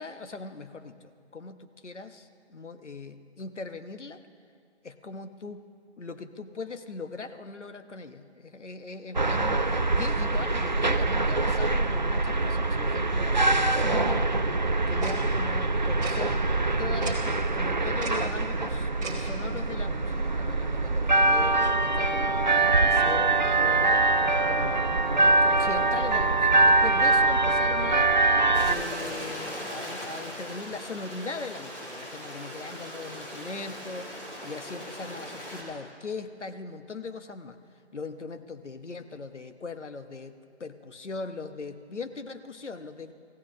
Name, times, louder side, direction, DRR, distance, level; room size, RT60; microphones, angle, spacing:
voice 1, 0.0-4.2 4.8-5.6 6.0-14.3 14.9-16.4 16.8-22.4 22.7-24.1 24.5-24.9 25.1-28.2 28.6-34.1 34.4-37.6 37.9-43.1, left 4 dB, 80° left, 9 dB, 1.2 m, -40 dB
sound 1, 9.1-28.7, right 2 dB, 40° right, 0.4 m, -24 dB
Tick-tock, 15.0-15.2 16.0-16.1 17.0-17.1 18.0-18.2 19.0-19.2, right 4 dB, 15° right, 1.9 m, -36 dB
Stream, 28.5-35.6, equal, 15° left, 2.3 m, -39 dB
26.5 x 15.5 x 3.2 m, 2.3 s
figure-of-eight pair, 160°, 35 cm